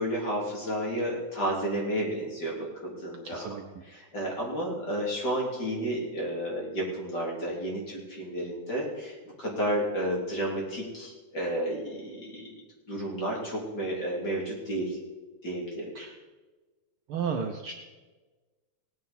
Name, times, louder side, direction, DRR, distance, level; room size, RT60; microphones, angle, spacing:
voice 1, 0.0-12.6 12.9-15.0 15.4-15.9, right 1 dB, 35° left, -3 dB, 3.4 m, -32 dB
voice 2, 3.3-3.6 16.0-16.1 17.1-17.7, right 6 dB, 85° right, 3 dB, 1.1 m, -32 dB
18.0 x 9.4 x 4.2 m, 1.3 s
omnidirectional pair, 3.5 m